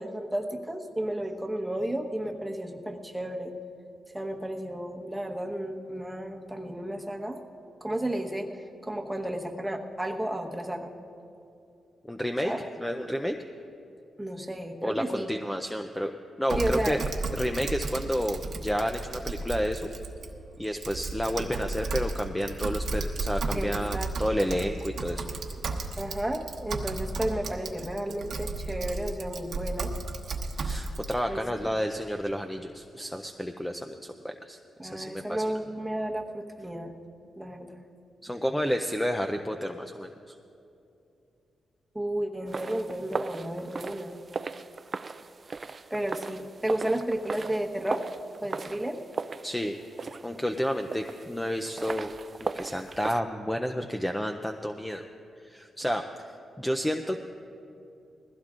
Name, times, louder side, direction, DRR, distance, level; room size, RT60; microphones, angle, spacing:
voice 1, 0.0-3.5 4.1-7.4 7.8-10.9 12.4-12.6 14.2-15.3 16.6-17.0 23.5-24.4 26.0-29.9 31.3-31.7 34.8-36.9 37.4-37.8 41.9-44.2 45.9-48.1 48.4-49.0, right 1 dB, 10° right, 2 dB, 1.2 m, -32 dB
voice 2, 12.0-13.4 14.8-16.1 16.4-17.0 17.3-19.9 20.6-25.3 30.6-35.4 38.2-40.4 45.4-45.9 49.4-49.8 50.2-52.1 52.4-55.0 55.4-56.0 56.6-57.2, equal, 10° left, 5 dB, 0.5 m, -30 dB
Typing, 16.5-31.1, right 3 dB, 75° right, 1.1 m, -34 dB
sound 1, 42.5-53.2, right 4 dB, 40° right, 0.3 m, -38 dB
20.5 x 15.5 x 2.5 m, 2.7 s
cardioid pair, 85°, 0 cm